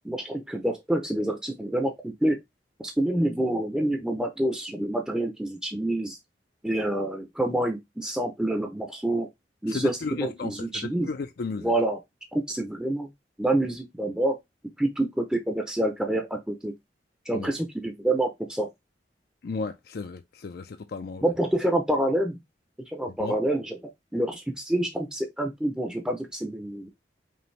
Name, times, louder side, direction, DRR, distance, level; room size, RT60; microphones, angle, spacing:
voice 1, 0.0-2.4 2.8-6.2 6.6-9.3 9.6-11.1 11.6-12.0 12.3-13.1 13.4-14.4 14.8-16.7 17.3-18.7 21.2-22.4 22.9-23.8 24.1-26.9, right 1 dB, 5° right, 0.6 m, -27 dB
voice 2, 9.7-11.7 17.3-17.5 19.4-21.2 23.2-23.4, left 4 dB, 60° left, 0.4 m, -34 dB
5.3 x 2.6 x 3.2 m
head